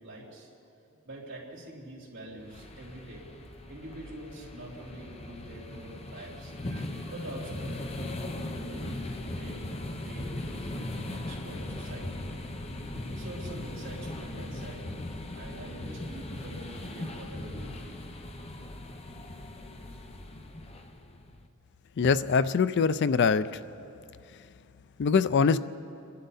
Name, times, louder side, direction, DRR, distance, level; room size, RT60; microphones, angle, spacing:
voice 1, 0.0-0.5 1.1-3.3 3.7-9.0 9.3-12.2 12.9-14.9 15.3-18.0, right 1 dB, 60° right, -4 dB, 3.7 m, -45 dB
sound 1, 2.4-21.5, left 1 dB, 30° left, 0.8 m, -39 dB
voice 2, 22.0-23.5 25.0-25.6, left 5 dB, 55° left, 14 dB, 0.4 m, -23 dB
29.5 x 11.5 x 4.1 m, 2.6 s
head